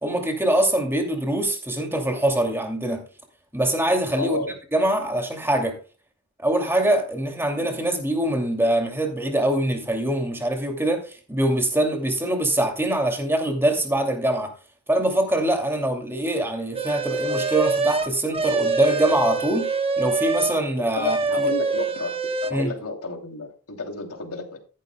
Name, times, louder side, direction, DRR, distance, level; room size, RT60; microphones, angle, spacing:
voice 1, 0.0-3.0 3.5-4.4 4.7-5.8 6.4-14.5 14.9-21.5 22.5-22.7, right 1 dB, 10° right, 2.5 m, -23 dB
voice 2, 4.2-4.5 21.0-22.1 22.4-24.6, left 3 dB, 80° left, 2.9 m, -31 dB
sound 1, 16.7-20.6 20.9-22.5, right 3 dB, 25° right, 1.0 m, -25 dB
14.0 x 11.5 x 2.2 m
head